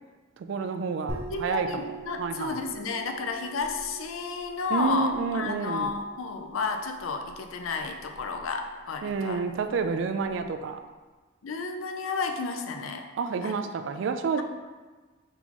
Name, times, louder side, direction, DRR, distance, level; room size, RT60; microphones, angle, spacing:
voice 1, 0.4-1.9 2.2-2.6 4.7-5.9 9.0-10.8 13.2-14.4, right 5 dB, 65° right, 7 dB, 0.3 m, -29 dB
voice 2, 1.1-9.4 11.4-13.0 13.4-13.6, left 4 dB, 80° left, 5 dB, 0.4 m, -32 dB
sound 1, 1.1-10.4, right 3 dB, 30° right, 0.7 m, -44 dB
4.1 x 3.7 x 2.9 m, 1.3 s
head